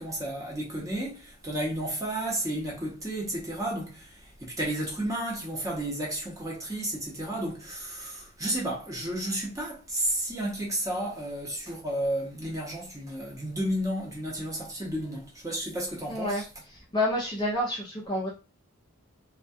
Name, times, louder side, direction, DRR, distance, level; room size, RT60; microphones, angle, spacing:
voice 1, 0.0-16.5, right 1 dB, 15° right, 0.7 m, -32 dB
voice 2, 16.1-16.4 16.9-18.3, left 1 dB, 20° left, 0.4 m, -28 dB
2.3 x 2.2 x 2.6 m
head